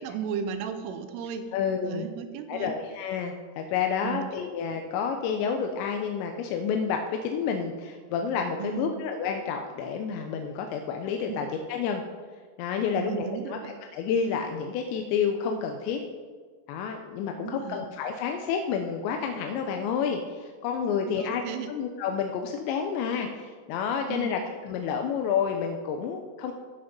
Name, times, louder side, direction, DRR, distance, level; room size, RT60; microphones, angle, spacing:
voice 1, 0.0-1.5 1.8-2.7 4.0-4.2 8.6-8.9 11.3-11.4 13.0-13.7 17.3-17.8 20.8-21.7 24.1-24.4, right 7 dB, 90° right, 8 dB, 3.3 m, -35 dB
voice 2, 1.5-2.1 2.5-12.0 12.6-16.0 16.7-21.4 21.7-26.5, left 6 dB, 80° left, 4 dB, 2.7 m, -29 dB
15.0 x 5.6 x 5.3 m, 1.5 s
omnidirectional pair, 5.6 m